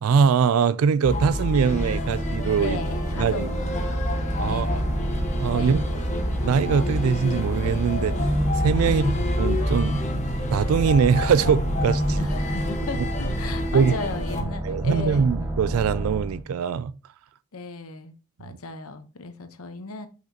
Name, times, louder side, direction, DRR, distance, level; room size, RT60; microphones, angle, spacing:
voice 1, 0.0-2.8 3.2-3.5 4.4-4.8 5.4-6.0 6.4-8.2 8.5-10.0 10.5-12.3 13.7-13.9 14.6-16.9, right 6 dB, 75° right, 0.3 m, -22 dB
sound 1, 1.0-14.4, left 1 dB, 35° left, 1.1 m, -27 dB
sound 2, 1.7-16.4, right 1 dB, 10° right, 1.2 m, -31 dB
voice 2, 2.6-4.0 4.4-4.9 5.5-6.1 8.8-9.2 12.1-15.3 17.5-20.1, left 3 dB, 85° left, 0.9 m, -36 dB
5.9 x 5.8 x 2.8 m
head